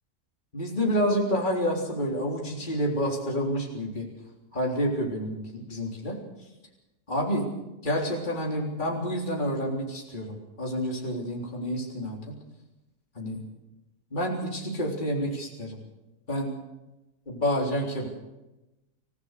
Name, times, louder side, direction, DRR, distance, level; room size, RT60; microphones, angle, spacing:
voice 1, 0.5-4.1 4.5-6.2 7.1-7.5 7.8-12.3 13.2-13.4 14.1-15.8 16.3-16.5 17.3-18.1, equal, 30° left, -1 dB, 3.9 m, -29 dB
28.0 x 15.5 x 6.7 m, 0.99 s
omnidirectional pair, 1.7 m